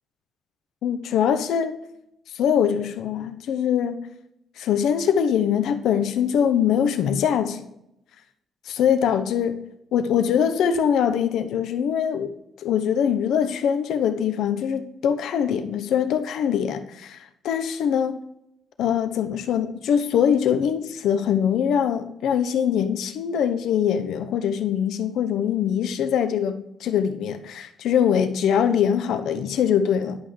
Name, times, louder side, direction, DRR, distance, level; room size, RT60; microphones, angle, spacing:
voice 1, 0.8-1.7 2.3-4.1 4.6-7.6 8.7-9.6 9.9-12.3 12.6-18.2 18.8-30.2, left 8 dB, 80° left, 9 dB, 0.8 m, -23 dB
11.0 x 5.6 x 3.2 m, 0.80 s
cardioid pair, 90°, 0 cm